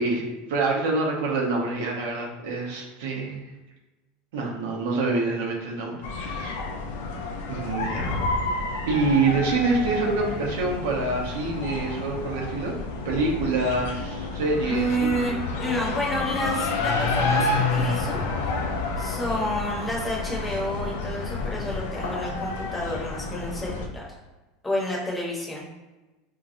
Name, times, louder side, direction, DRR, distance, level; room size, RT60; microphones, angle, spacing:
voice 1, 0.0-3.5 4.3-6.6 7.5-8.2 8.9-12.7 13.0-15.4, right 3 dB, 85° right, -2 dB, 0.8 m, -26 dB
sound 1, 6.0-23.9, left 3 dB, 80° left, 0.5 m, -29 dB
voice 2, 14.7-15.3 15.6-18.2 19.0-24.0 24.6-25.6, equal, 10° left, -4 dB, 0.9 m, -29 dB
3.6 x 3.0 x 2.6 m, 1.1 s
supercardioid pair, 140°, 0 cm